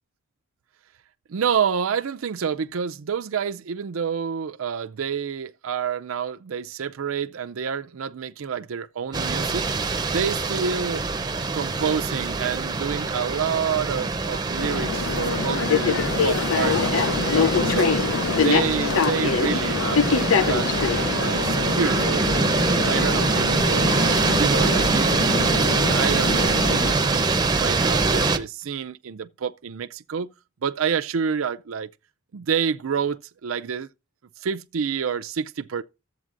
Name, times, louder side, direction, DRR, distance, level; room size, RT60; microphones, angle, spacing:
voice 1, 1.3-11.0 11.5-18.0 18.4-20.7 21.2-24.0 24.4-30.3 30.6-31.9 32.3-33.9 34.4-35.8, right 7 dB, 85° right, 0.5 m, -28 dB
sound 1, 9.1-28.4, right 3 dB, 20° right, 0.7 m, -24 dB
sound 2, 14.6-26.9, left 5 dB, 80° left, 0.6 m, -25 dB
13.5 x 8.1 x 2.5 m
head